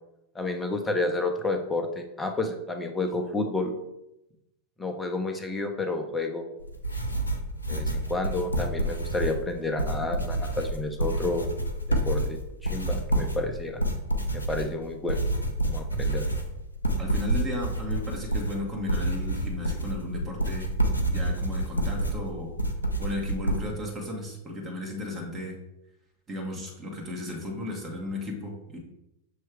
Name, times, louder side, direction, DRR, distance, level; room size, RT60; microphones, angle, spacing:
voice 1, 0.3-3.7 4.8-6.4 7.7-11.5 11.9-13.8 14.3-15.2 15.7-16.2, left 2 dB, 10° left, 5 dB, 0.8 m, -30 dB
sound 1, 6.6-23.6, right 1 dB, 80° left, 0.7 m, -28 dB
voice 2, 17.0-20.7 21.1-22.5 23.0-25.6 26.3-28.8, left 1 dB, 25° right, 0 dB, 1.4 m, -35 dB
6.6 x 3.1 x 4.7 m, 0.89 s
figure-of-eight pair, 90°, 0 cm